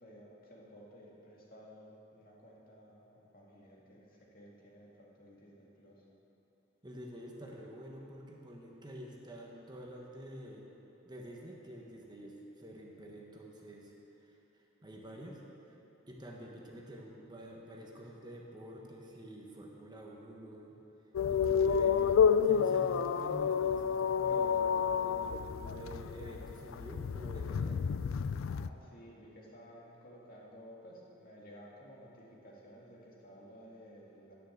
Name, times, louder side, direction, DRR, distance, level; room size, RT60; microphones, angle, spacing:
voice 1, 0.0-6.1 28.4-34.3, equal, 45° left, -3 dB, 2.2 m, -55 dB
voice 2, 6.8-10.7 11.0-13.9 14.2-15.7 16.1-20.8 21.3-27.8, equal, 20° right, -1 dB, 1.2 m, -48 dB
sound 1, 21.1-28.7, left 7 dB, 75° left, 0.4 m, -30 dB
10.0 x 9.4 x 7.3 m, 3.0 s
head